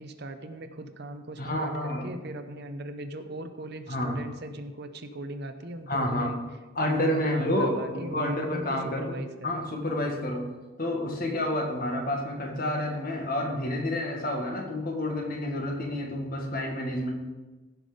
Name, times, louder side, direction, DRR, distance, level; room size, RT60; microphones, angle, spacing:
voice 1, 0.0-6.4 6.8-9.7, right 1 dB, 50° right, 8 dB, 0.8 m, -39 dB
voice 2, 1.4-2.1 3.9-4.2 5.9-6.3 6.7-9.2 9.4-10.5 10.8-17.1, left 1 dB, 45° left, 1 dB, 1.8 m, -29 dB
16.0 x 6.0 x 5.1 m, 1.2 s
head